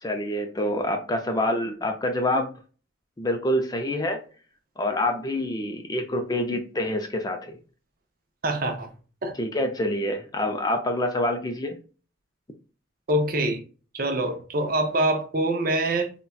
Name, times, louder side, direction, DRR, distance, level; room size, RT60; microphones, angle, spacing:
voice 1, 0.0-2.5 3.2-4.2 4.8-7.6 9.4-11.8, left 1 dB, 20° left, 0.4 m, -26 dB
voice 2, 8.4-8.9 9.2-9.4 13.1-13.6 13.9-16.1, right 1 dB, 45° right, 0.5 m, -25 dB
3.9 x 2.2 x 2.2 m
head